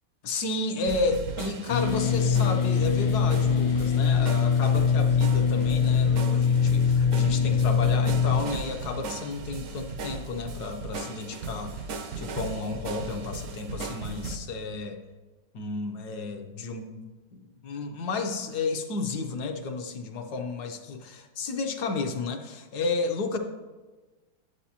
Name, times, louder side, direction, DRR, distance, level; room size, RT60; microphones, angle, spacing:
voice 1, 0.2-11.8 12.2-15.0 15.5-23.4, left 3 dB, 65° left, 5 dB, 1.1 m, -32 dB
sound 1, 0.9-14.4, right 4 dB, 80° right, 0.7 m, -37 dB
sound 2, 1.7-8.4, left 6 dB, 85° left, 1.4 m, -23 dB
9.4 x 7.8 x 2.9 m, 1.3 s
omnidirectional pair, 2.2 m